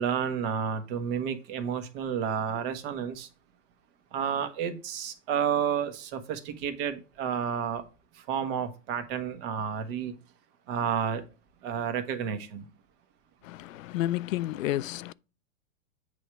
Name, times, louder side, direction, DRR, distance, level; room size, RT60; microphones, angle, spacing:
voice 1, 0.0-3.3 4.1-7.8 8.1-10.1 10.7-11.2 11.6-12.7, right 7 dB, 45° right, 1.2 m, -31 dB
voice 2, 13.4-15.1, left 15 dB, 85° left, 0.5 m, -31 dB
8.3 x 3.3 x 5.9 m
supercardioid pair, 145°, 39 cm